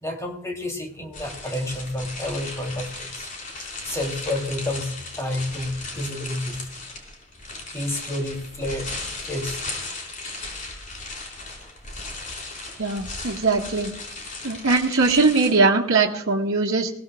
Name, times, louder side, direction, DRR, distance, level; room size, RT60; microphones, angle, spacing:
voice 1, 0.0-6.6 7.7-9.6 11.6-11.7, left 1 dB, 15° left, 2 dB, 3.0 m, -30 dB
sound 1, 1.1-15.5, left 3 dB, 40° left, 4.5 m, -36 dB
voice 2, 12.8-13.9 14.4-16.9, right 3 dB, 75° right, -4 dB, 1.8 m, -20 dB
21.5 x 17.5 x 2.4 m, 0.72 s
head